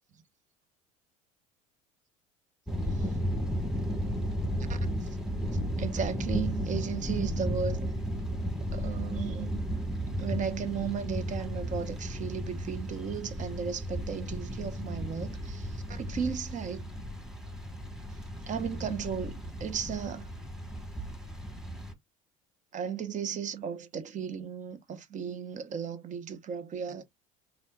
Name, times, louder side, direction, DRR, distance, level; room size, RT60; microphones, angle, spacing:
sound 1, 2.7-21.9, equal, ahead, 1.5 m, -34 dB
voice 1, 4.7-5.1 5.8-7.9 8.6-9.6 10.2-16.9 18.5-20.3 22.7-27.0, right 7 dB, 45° right, 1.1 m, -35 dB
4.2 x 3.6 x 2.3 m
hypercardioid pair, 75°, 18 cm